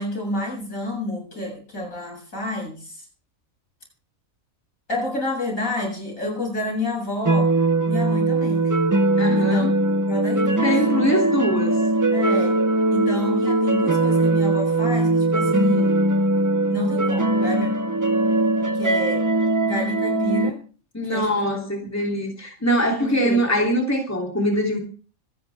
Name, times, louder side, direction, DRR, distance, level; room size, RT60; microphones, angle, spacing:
voice 1, 0.0-3.0 4.9-7.5 7.8-8.8 9.3-9.7 10.1-10.8 12.1-12.6 12.9-16.0 16.7-17.7 18.6-19.3 19.6-20.6 21.0-21.6 23.0-23.5, left 1 dB, 70° left, -1 dB, 8.3 m, -29 dB
sound 1, 7.2-20.5, right 2 dB, 15° right, 0.8 m, -20 dB
voice 2, 9.2-9.7 10.6-11.8 20.9-24.8, equal, 10° left, 0 dB, 3.2 m, -23 dB
25.0 x 10.5 x 3.5 m, 0.39 s
omnidirectional pair, 1.5 m